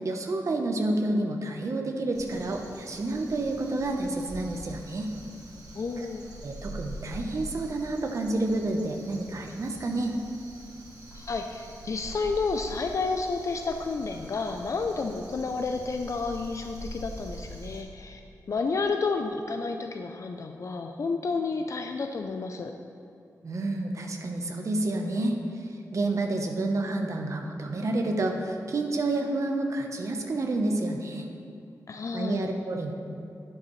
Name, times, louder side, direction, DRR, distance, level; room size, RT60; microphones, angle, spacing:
voice 1, 0.0-5.1 6.0-6.1 6.4-10.1 23.4-25.4 25.9-31.3 32.1-32.9, right 2 dB, 50° right, 3 dB, 0.9 m, -29 dB
Crow, 2.1-17.8, right 1 dB, 75° right, 1.7 m, -44 dB
voice 2, 5.7-6.2 11.1-18.2 18.5-22.7 31.9-32.5, left 4 dB, 50° left, 4 dB, 0.5 m, -31 dB
11.0 x 10.0 x 3.2 m, 2.7 s
wide cardioid pair, 155°, 7 cm